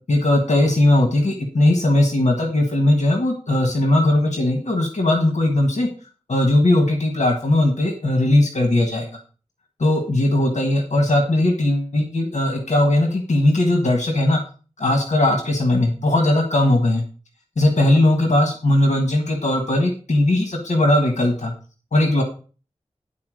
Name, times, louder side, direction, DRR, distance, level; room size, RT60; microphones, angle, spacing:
voice 1, 0.1-5.9 6.3-9.1 9.8-14.4 14.8-17.0 17.6-21.5 21.9-22.2, left 1 dB, 80° left, 3 dB, 1.5 m, -18 dB
11.0 x 4.3 x 6.3 m, 0.37 s
wide cardioid pair, 75°, 12 cm